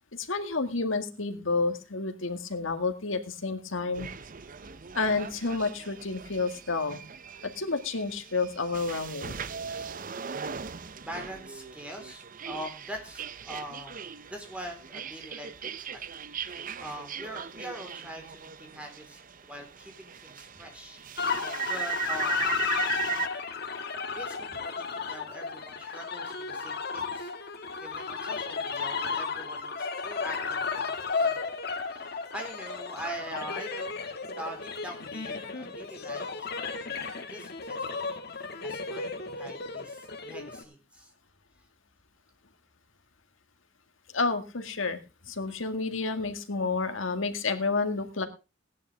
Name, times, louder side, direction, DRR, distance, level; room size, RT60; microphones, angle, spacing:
voice 1, 0.1-4.1 4.9-7.0 7.4-9.4 44.1-45.0 45.2-48.3, left 3 dB, 80° left, 7 dB, 2.0 m, -30 dB
sound 1, 4.0-23.3, right 8 dB, 45° right, 0.7 m, -39 dB
voice 2, 9.6-10.7 11.0-16.0 16.3-21.0 21.3-22.6 24.2-27.3 27.8-31.4 31.8-38.0 38.3-41.1, equal, 5° right, 3 dB, 3.9 m, -43 dB
sound 2, 21.2-40.6, left 5 dB, 50° left, 1.9 m, -33 dB
17.0 x 10.5 x 3.4 m, 0.29 s
head